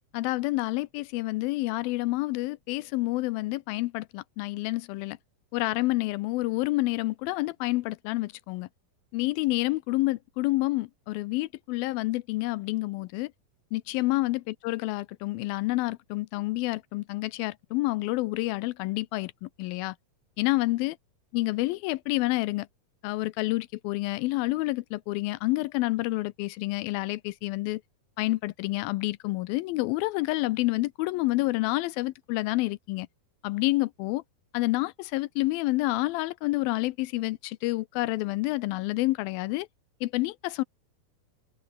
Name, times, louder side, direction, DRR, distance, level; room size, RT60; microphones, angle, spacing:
voice 1, 0.1-5.2 5.5-8.7 9.1-13.3 13.7-20.0 20.4-21.0 21.3-22.7 23.0-27.8 28.2-33.1 33.4-34.2 34.5-39.7 40.0-40.6, left 20 dB, 85° left, 2.4 m, -28 dB
omnidirectional pair, 4.3 m